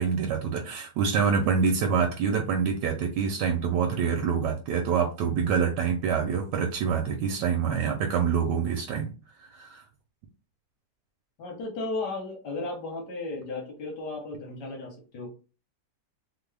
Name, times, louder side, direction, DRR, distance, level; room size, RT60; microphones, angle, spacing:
voice 1, 0.0-9.1 9.4-9.8, right 6 dB, 90° right, 3 dB, 1.3 m, -26 dB
voice 2, 11.4-15.3, left 3 dB, 85° left, -1 dB, 1.6 m, -35 dB
3.7 x 2.0 x 3.3 m, 0.34 s
omnidirectional pair, 1.8 m